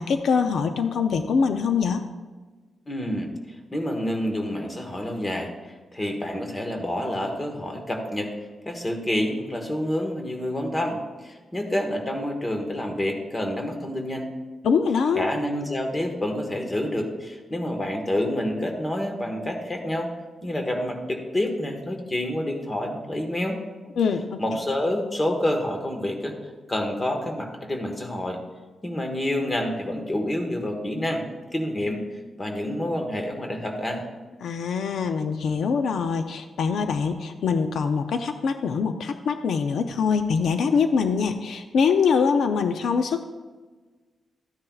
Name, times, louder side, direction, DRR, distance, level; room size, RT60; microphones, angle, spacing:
voice 1, 0.0-2.0 14.6-15.3 24.0-24.4 34.4-43.2, left 5 dB, 75° left, 7 dB, 0.5 m, -23 dB
voice 2, 2.9-3.3 3.7-8.3 8.6-14.3 15.1-20.1 20.4-23.6 24.4-26.3 26.7-28.4 28.8-31.2 31.5-32.0 32.4-34.0, left 1 dB, 20° left, 3 dB, 1.3 m, -28 dB
13.5 x 9.7 x 2.4 m, 1.3 s
wide cardioid pair, 165°, 0 cm